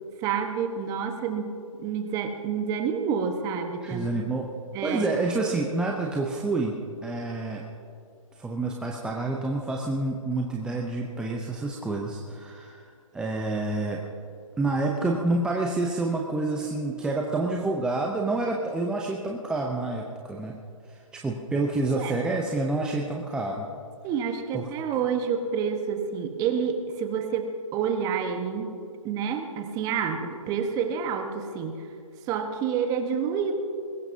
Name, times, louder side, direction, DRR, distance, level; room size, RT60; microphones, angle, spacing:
voice 1, 0.2-1.5 1.8-4.1 4.7-5.1 21.9-22.1 24.0-28.7 29.0-31.8 32.3-33.5, right 7 dB, 20° right, 6 dB, 1.2 m, -28 dB
voice 2, 3.8-4.5 4.8-7.6 8.4-14.0 14.6-20.6 20.9-23.7 24.5-24.7, right 2 dB, 5° right, 0 dB, 0.6 m, -28 dB
21.0 x 18.0 x 2.8 m, 2.4 s
figure-of-eight pair, 140°, 18 cm